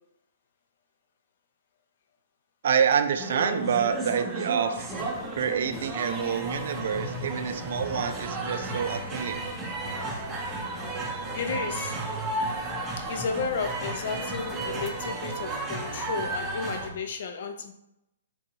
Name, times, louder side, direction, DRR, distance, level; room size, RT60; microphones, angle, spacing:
voice 1, 2.6-4.9 5.3-9.4, right 7 dB, 60° right, 9 dB, 0.4 m, -27 dB
sound 1, 3.2-16.9, right 2 dB, 15° right, 0.6 m, -33 dB
sound 2, 4.8-14.9, left 6 dB, 20° left, 0.3 m, -48 dB
voice 2, 11.3-12.0 13.0-17.7, left 5 dB, 55° left, 6 dB, 0.6 m, -33 dB
3.9 x 2.6 x 4.5 m, 0.85 s
hypercardioid pair, 155°, 0 cm